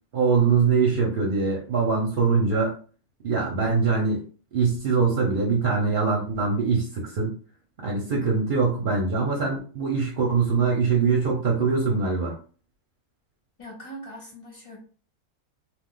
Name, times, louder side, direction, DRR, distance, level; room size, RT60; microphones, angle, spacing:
voice 1, 0.1-2.8 3.2-4.2 4.5-7.3 7.8-12.4, right 5 dB, 50° right, -1 dB, 0.6 m, -23 dB
voice 2, 13.6-14.8, right 1 dB, 25° left, -2 dB, 0.9 m, -41 dB
2.4 x 2.4 x 3.7 m, 0.41 s
omnidirectional pair, 1.6 m